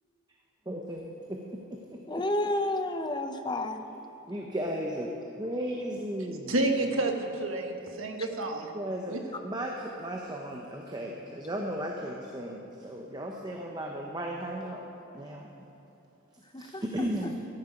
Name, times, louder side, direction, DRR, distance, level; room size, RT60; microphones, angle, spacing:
voice 1, 0.7-1.8 2.1-2.5 4.3-5.1 5.4-6.6 8.7-9.2 9.4-14.9 15.1-15.5 16.6-17.3, right 1 dB, 20° right, 0 dB, 0.7 m, -35 dB
voice 2, 2.1-3.8 16.5-17.3, left 1 dB, 20° left, 7 dB, 0.6 m, -31 dB
voice 3, 6.5-8.7 9.1-9.2, right 2 dB, 65° right, 3 dB, 1.2 m, -29 dB
14.0 x 10.5 x 5.0 m, 2.9 s
head